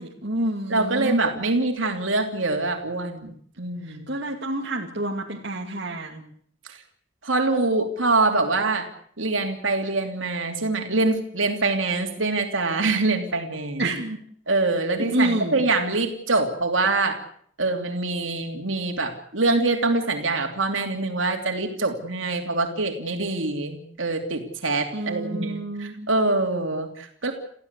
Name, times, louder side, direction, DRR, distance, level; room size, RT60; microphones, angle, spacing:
voice 1, 0.0-1.2 3.8-6.2 13.8-14.2 15.1-15.6 24.9-26.1, right 1 dB, 60° right, -1 dB, 2.7 m, -28 dB
voice 2, 0.7-4.1 6.7-6.8 7.2-8.9 9.2-13.8 14.5-17.2 17.6-27.3, right 3 dB, 85° right, 4 dB, 3.0 m, -24 dB
29.0 x 15.5 x 8.2 m, 0.62 s
head